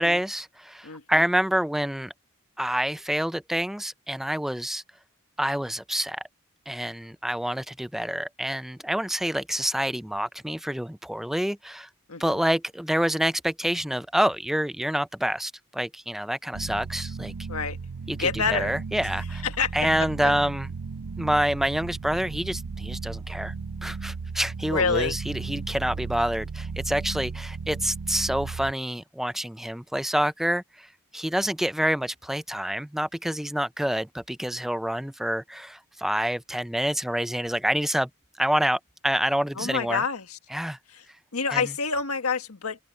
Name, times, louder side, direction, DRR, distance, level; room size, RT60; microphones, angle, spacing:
voice 1, 0.0-2.1 2.6-4.8 5.4-6.2 6.7-11.9 12.2-17.3 18.1-19.4 19.7-20.7 21.2-23.5 23.8-30.9 31.1-38.1 38.4-40.0 40.5-40.8 41.5-41.6, equal, ahead, 0.4 m, -27 dB
voice 2, 0.8-1.2 12.1-12.4 17.5-17.8 18.2-18.7 19.4-19.7 20.2-20.4 24.7-25.2 39.5-40.4 40.9-41.0 41.3-42.8, left 5 dB, 90° left, 1.6 m, -27 dB
sound 1, 16.5-28.7, right 4 dB, 85° right, 0.6 m, -35 dB
head